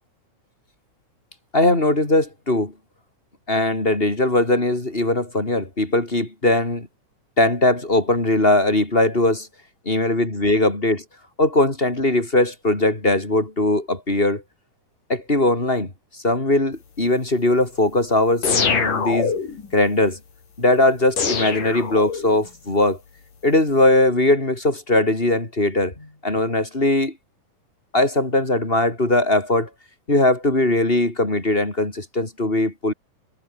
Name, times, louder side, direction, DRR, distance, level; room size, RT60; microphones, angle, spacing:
voice 1, 1.5-2.7 3.5-6.9 7.4-9.5 9.9-11.0 11.4-14.4 15.1-15.9 16.2-19.3 19.7-20.2 20.6-23.0 23.4-27.1 27.9-29.7 30.1-32.9, left 1 dB, 15° left, 4.0 m, -20 dB
sound 1, 18.4-19.7 21.2-22.5, left 6 dB, 75° left, 5.8 m, -23 dB
omnidirectional pair, 3.7 m